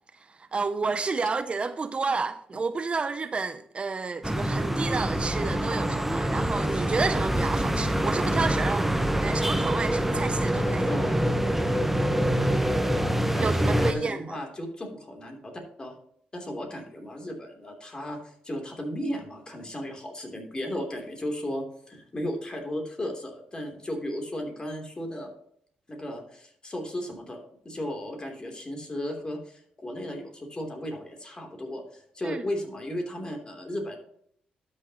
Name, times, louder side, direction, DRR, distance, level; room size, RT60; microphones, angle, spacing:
voice 1, 0.3-8.9 9.2-10.9 13.4-14.4 32.2-32.4, right 4 dB, 35° right, 0.5 m, -30 dB
sound 1, 4.2-13.9, right 1 dB, 5° right, 0.9 m, -25 dB
voice 2, 10.9-11.2 13.3-15.5 15.8-15.9 16.3-25.3 25.9-27.4 27.6-34.0, equal, 25° left, 3.0 m, -35 dB
12.0 x 6.5 x 2.9 m
supercardioid pair, 65°, 3 cm